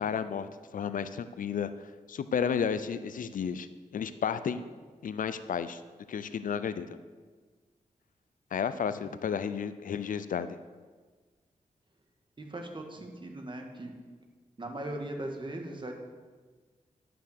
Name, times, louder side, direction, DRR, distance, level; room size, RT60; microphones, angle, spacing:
voice 1, 0.0-1.7 2.1-3.7 3.9-4.6 5.0-5.8 6.1-7.0 8.5-10.6, left 7 dB, 80° left, 12 dB, 0.5 m, -32 dB
voice 2, 12.4-13.9 14.6-15.9, right 1 dB, 35° right, 3 dB, 1.8 m, -39 dB
11.5 x 5.9 x 6.6 m, 1.4 s
cardioid pair, 70°, 14 cm